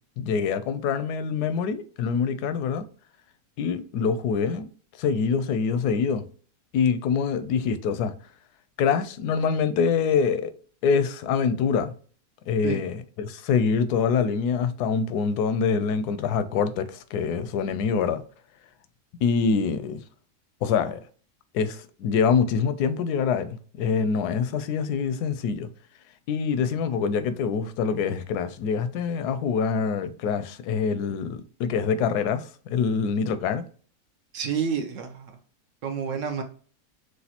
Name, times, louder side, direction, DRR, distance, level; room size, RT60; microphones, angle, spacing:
voice 1, 0.2-2.8 3.6-4.7 5.0-6.2 6.7-8.1 8.8-10.5 10.8-11.9 12.5-18.2 19.2-20.0 20.6-21.0 21.5-25.7 26.3-33.6, left 6 dB, 85° left, 1.1 m, -25 dB
voice 2, 34.3-35.4 35.8-36.4, right 6 dB, 60° right, 1.0 m, -29 dB
6.5 x 2.5 x 2.8 m
omnidirectional pair, 1.6 m